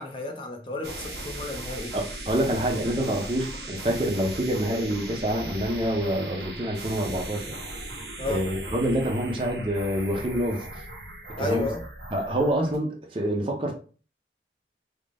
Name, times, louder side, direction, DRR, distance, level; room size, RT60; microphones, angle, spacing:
voice 1, 0.0-2.0 8.2-8.5 11.4-11.9, left 2 dB, 30° left, 0.5 m, -32 dB
sound 1, 0.8-12.8, right 2 dB, 65° right, 1.3 m, -38 dB
voice 2, 1.9-7.6 8.3-10.7 11.4-11.7 12.1-13.7, equal, 30° right, 0.7 m, -27 dB
3.7 x 2.1 x 3.4 m
head